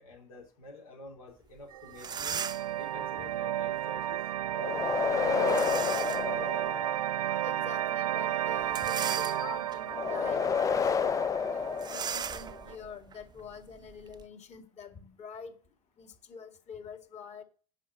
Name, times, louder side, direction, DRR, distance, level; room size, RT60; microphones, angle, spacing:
voice 1, 0.0-2.4 2.8-4.2, left 3 dB, 80° left, 2.8 m, -49 dB
sound 1, 1.6-1.7 1.9-2.8 5.5-6.3 6.9-7.0 8.6-9.7 10.3-10.5 10.8-10.9 11.8-14.2, right 7 dB, 25° right, 0.7 m, -38 dB
sound 2, 1.7-12.8, right 12 dB, 85° right, 0.4 m, -33 dB
sound 3, 4.5-7.3 9.9-12.6, left 6 dB, 20° left, 0.4 m, -30 dB
voice 2, 7.4-11.2 11.5-11.6 11.9-15.5 16.0-17.4, left 5 dB, 40° left, 2.1 m, -46 dB
9.8 x 5.3 x 7.7 m
figure-of-eight pair, 70°, 18 cm